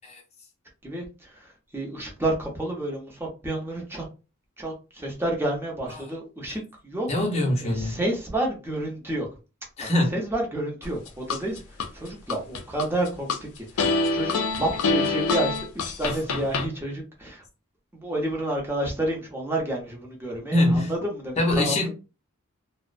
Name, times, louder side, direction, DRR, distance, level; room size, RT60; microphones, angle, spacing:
voice 1, 0.8-4.0 4.6-7.1 7.6-9.3 10.1-13.3 13.6-17.4 17.9-21.9, right 1 dB, 10° right, 0.7 m, -30 dB
voice 2, 7.1-8.0 9.8-10.2 20.5-20.9 21.4-21.9, left 1 dB, 30° left, 0.7 m, -23 dB
sound 1, 10.8-11.9 12.3-13.4 13.8-16.7, left 3 dB, 75° left, 0.5 m, -25 dB
2.4 x 2.0 x 2.4 m
head